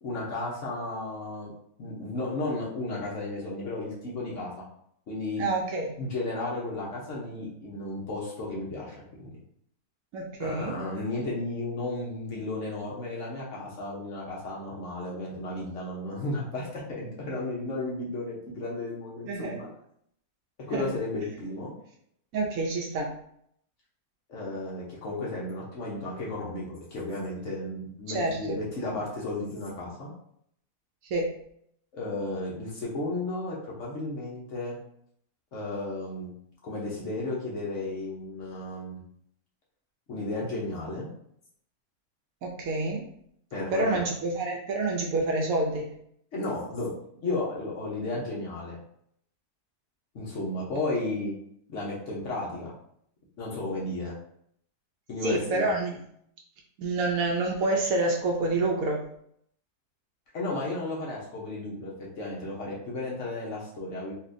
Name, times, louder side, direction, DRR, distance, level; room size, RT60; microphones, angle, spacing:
voice 1, 0.0-1.5 1.8-4.6 5.1-5.5 6.0-9.3 10.4-19.7 20.7-21.7 24.3-30.1 31.9-34.8 35.5-36.3 36.6-39.0 40.1-41.1 43.5-44.1 46.3-48.8 50.1-51.3 51.7-52.7 53.4-54.2 55.1-55.7 60.3-64.1, left 2 dB, 55° left, -4 dB, 1.1 m, -33 dB
voice 2, 5.4-5.9 10.1-10.8 19.3-19.6 20.7-20.9 22.3-23.1 28.1-28.6 31.1-31.3 42.4-43.1 43.7-45.9 55.2-56.0 56.8-59.0, right 2 dB, 70° right, 0 dB, 0.9 m, -28 dB
4.2 x 2.4 x 2.6 m, 0.68 s
omnidirectional pair, 1.7 m